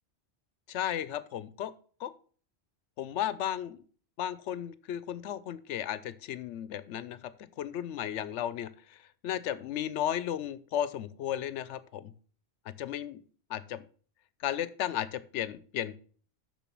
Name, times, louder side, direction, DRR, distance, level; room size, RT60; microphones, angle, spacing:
voice 1, 0.7-1.7 2.0-2.1 3.0-3.8 4.2-7.3 7.6-8.7 9.2-12.1 12.7-13.2 13.5-13.8 14.4-16.0, left 11 dB, 85° left, 16 dB, 0.9 m, -34 dB
7.0 x 6.1 x 6.0 m, 0.44 s
omnidirectional pair, 1.2 m